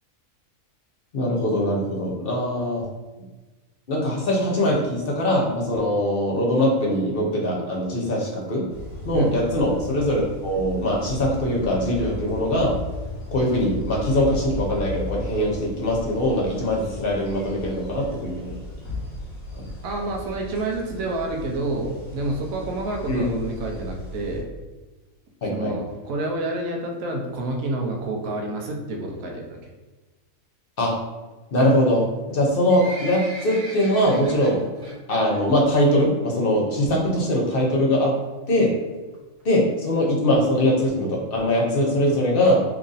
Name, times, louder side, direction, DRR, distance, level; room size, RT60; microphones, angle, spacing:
voice 1, 1.1-2.8 3.9-8.6 9.0-12.8 13.3-18.6 19.6-19.7 23.1-23.2 25.4-25.7 30.8-30.9 31.5-34.6 35.1-38.1 38.5-38.7 39.4-42.6, left 1 dB, 50° left, -2 dB, 0.8 m, -22 dB
sound 1, 8.7-24.4, left 2 dB, 30° left, 1.2 m, -36 dB
voice 2, 19.8-24.5 25.5-29.7, right 2 dB, 80° right, 1 dB, 1.1 m, -28 dB
Livestock farm animals working animals, 32.3-35.0 35.3-35.6 35.9-36.0 36.7-36.8 37.1-37.2 37.3-37.4 38.0-38.2 38.8-38.9 39.1-39.2 39.4-39.5 39.7-39.8 40.3-40.4 40.9-41.0 41.4-41.5, right 1 dB, 45° right, 0.8 m, -38 dB
3.0 x 2.5 x 3.9 m, 1.2 s
omnidirectional pair, 1.4 m